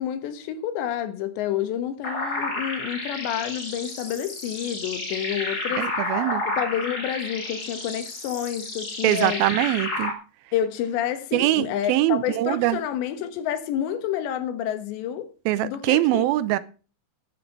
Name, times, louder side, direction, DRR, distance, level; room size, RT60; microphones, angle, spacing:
voice 1, 0.0-5.9 6.5-9.4 10.5-15.3 15.6-16.2, left 10 dB, 85° left, 3.7 m, -29 dB
sound 1, 2.0-10.1, left 2 dB, 35° left, 1.8 m, -31 dB
voice 2, 5.7-6.4 9.0-10.1 11.3-12.8 15.5-16.6, right 15 dB, 75° right, 2.3 m, -23 dB
16.0 x 7.7 x 4.6 m
omnidirectional pair, 4.9 m